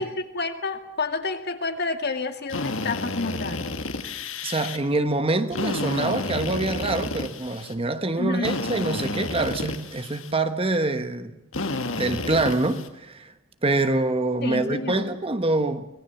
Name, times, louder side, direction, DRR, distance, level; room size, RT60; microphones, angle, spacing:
voice 1, 0.0-3.7 8.2-8.6 14.4-15.0, left 3 dB, 50° left, 2.1 m, -29 dB
Drill, 2.5-4.8 5.5-7.7 8.4-10.3 11.5-12.9, left 2 dB, 65° left, 2.0 m, -30 dB
voice 2, 4.4-11.4 12.0-13.3 13.6-15.9, right 2 dB, 25° right, 1.2 m, -25 dB
24.5 x 19.5 x 7.1 m
head